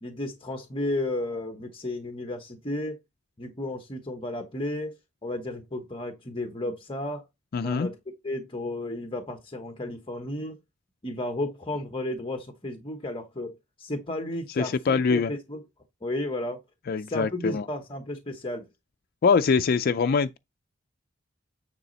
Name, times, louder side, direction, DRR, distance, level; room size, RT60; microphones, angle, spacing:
voice 1, 0.0-3.0 3.4-4.9 5.2-7.2 7.6-7.9 8.2-10.6 11.0-15.6 16.0-16.6 17.0-18.6, left 1 dB, 25° left, 1.1 m, -33 dB
voice 2, 7.5-7.9 14.6-15.3 16.9-17.7 19.2-20.4, left 5 dB, 50° left, 0.4 m, -23 dB
9.6 x 4.0 x 4.0 m
head